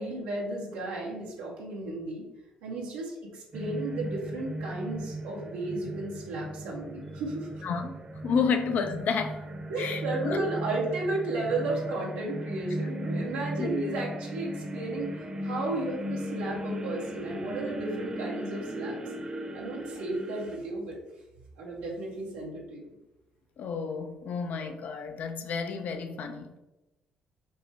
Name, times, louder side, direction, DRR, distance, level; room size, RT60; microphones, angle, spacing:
voice 1, 0.0-2.3 2.6-7.5 9.7-19.0 19.5-21.0 21.6-22.9, right 2 dB, 85° right, 1.2 m, -34 dB
sound 1, 3.5-20.6, right 1 dB, 30° right, 0.9 m, -37 dB
voice 2, 7.6-8.0 8.2-9.4 9.8-10.4 13.6-13.9 23.6-26.6, left 5 dB, 60° left, 0.6 m, -31 dB
5.2 x 2.2 x 4.5 m
hypercardioid pair, 55°, 3 cm